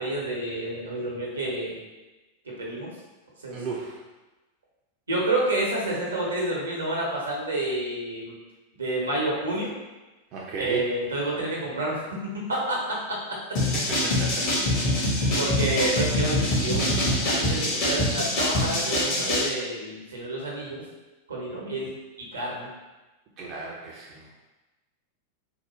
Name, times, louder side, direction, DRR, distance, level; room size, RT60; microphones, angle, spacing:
voice 1, 0.0-1.8 2.4-2.9 3.4-3.6 5.1-8.3 8.8-9.8 10.6-12.0 12.5-13.4 15.4-20.8 21.3-22.7, right 1 dB, 75° right, -3 dB, 0.9 m, -29 dB
voice 2, 3.5-4.0 10.3-11.0 13.6-14.5 14.9-15.4 23.4-24.3, right 4 dB, 35° right, -4 dB, 0.5 m, -34 dB
sound 1, 13.6-19.5, left 1 dB, 45° left, 1.0 m, -24 dB
3.6 x 2.1 x 3.1 m, 1.1 s
figure-of-eight pair, 90°, 0 cm